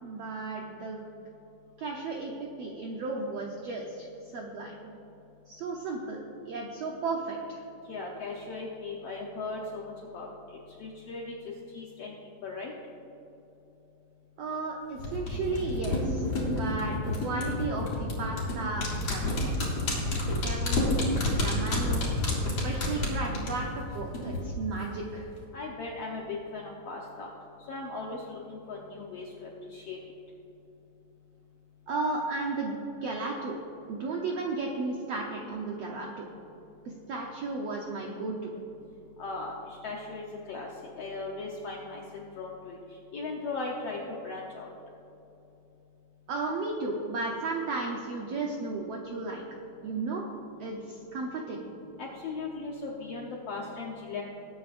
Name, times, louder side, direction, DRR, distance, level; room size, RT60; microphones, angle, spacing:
voice 1, 0.0-1.0 1.8-2.3 2.6-4.1 4.3-4.7 5.5-7.6 14.4-19.5 20.4-21.1 21.4-22.1 22.6-25.3 31.9-33.6 33.9-36.3 37.1-38.5 46.3-49.4 49.8-50.2 50.6-51.6, right 3 dB, 80° right, 0 dB, 1.4 m, -34 dB
voice 2, 7.9-10.3 10.8-11.3 11.7-12.1 12.4-12.7 25.5-27.3 27.7-30.0 39.2-40.7 41.0-42.8 43.1-44.0 44.2-44.7 52.0-54.2, left 3 dB, 75° left, -2 dB, 1.4 m, -38 dB
sound 1, 15.0-24.4 24.7-24.8, left 2 dB, 45° left, 3.3 m, -29 dB
21.0 x 9.3 x 2.6 m, 3.0 s
omnidirectional pair, 4.1 m